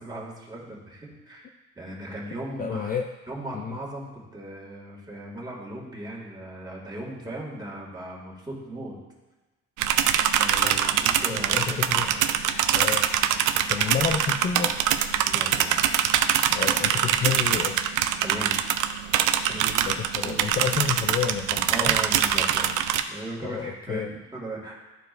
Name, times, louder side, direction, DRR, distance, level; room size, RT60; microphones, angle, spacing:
voice 1, 0.0-3.0 3.3-9.0 10.4-11.8 12.0-12.2 13.8-13.9 15.1-15.8 18.2-18.6 19.4-20.0 20.2-20.4 21.7-22.7 23.1-24.8, right 1 dB, 15° right, -3 dB, 2.0 m, -37 dB
voice 2, 2.6-3.0 3.5-3.8 10.6-10.9 11.3-12.1 12.7-13.0 13.7-14.8 16.5-17.8 19.8-21.9 23.4-24.1, left 7 dB, 30° left, 5 dB, 0.4 m, -30 dB
sound 1, 9.8-23.0, right 10 dB, 85° right, 0.5 m, -24 dB
12.0 x 4.5 x 2.6 m, 1.1 s
cardioid pair, 90°, 30 cm